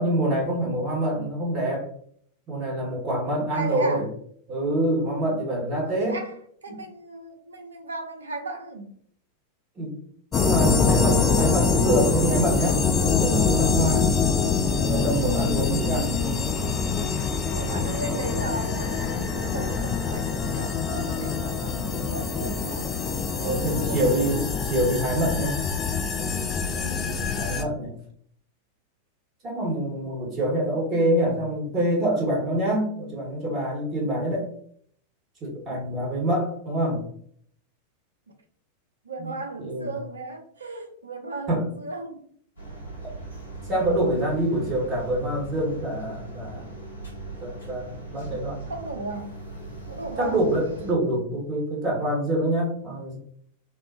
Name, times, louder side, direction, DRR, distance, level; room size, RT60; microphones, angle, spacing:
voice 1, 0.0-1.9 2.5-4.1 4.5-6.2 6.7-6.8 9.8-9.9 10.3-14.1 14.7-16.2 23.4-25.6 26.2-26.3 27.0-27.9 29.4-34.5 35.4-37.0 39.2-39.3 39.6-39.9 41.5-41.6 43.7-46.7 47.4-48.6 50.2-53.2, right 1 dB, 30° right, -2 dB, 1.2 m, -26 dB
voice 2, 3.5-4.1 5.8-6.3 6.6-8.9 17.5-24.2 26.7-27.3 39.0-42.2 48.7-49.3 49.9-50.4, right 2 dB, 75° right, 4 dB, 0.4 m, -36 dB
sound 1, 10.3-27.6, left 4 dB, 25° left, 0.3 m, -24 dB
sound 2, 42.6-50.9, right 2 dB, 75° left, 0.8 m, -39 dB
2.7 x 2.1 x 2.6 m, 0.62 s
figure-of-eight pair, 90°, 0 cm